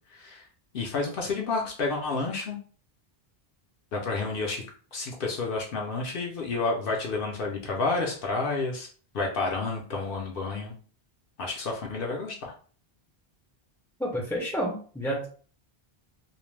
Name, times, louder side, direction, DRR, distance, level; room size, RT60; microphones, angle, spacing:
voice 1, 0.1-0.5 0.7-2.6 3.9-4.6 4.9-8.9 9.1-10.7 11.4-12.5, left 3 dB, 65° left, 0 dB, 0.7 m, -30 dB
voice 2, 14.0-15.3, equal, 5° left, -4 dB, 0.5 m, -30 dB
2.4 x 2.1 x 3.1 m, 0.41 s
omnidirectional pair, 1.0 m